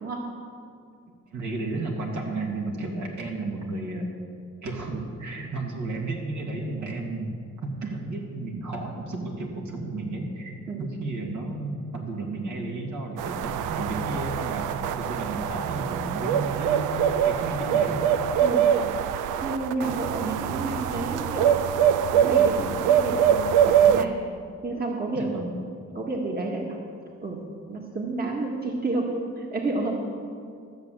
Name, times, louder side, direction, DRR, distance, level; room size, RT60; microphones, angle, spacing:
voice 1, 1.3-4.1 4.6-7.3 7.6-10.5 10.8-14.6 14.9-16.8 17.2-18.0 25.1-25.5, right 2 dB, 65° right, -1 dB, 2.6 m, -32 dB
sound 1, 13.2-24.0, right 9 dB, 90° right, 0.6 m, -23 dB
voice 2, 19.1-21.6 22.1-24.1 24.6-25.3 25.9-26.8 27.2-27.4 27.7-30.0, right 2 dB, 30° right, -1 dB, 1.8 m, -30 dB
13.5 x 6.9 x 7.7 m, 2.3 s
cardioid pair, 90°, 30 cm